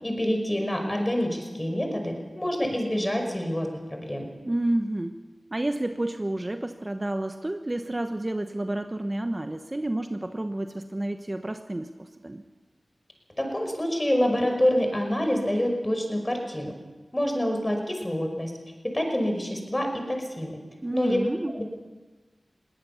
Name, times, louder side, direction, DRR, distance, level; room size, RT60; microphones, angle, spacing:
voice 1, 0.0-4.3 13.4-16.7 17.1-18.5 18.8-20.6 20.9-21.2 21.5-21.6, equal, 20° left, 3 dB, 5.4 m, -27 dB
voice 2, 4.4-5.2 5.5-12.4 20.8-21.6, right 1 dB, 30° right, 7 dB, 1.1 m, -30 dB
21.0 x 17.5 x 7.1 m, 1.3 s
cardioid pair, 45°, 0 cm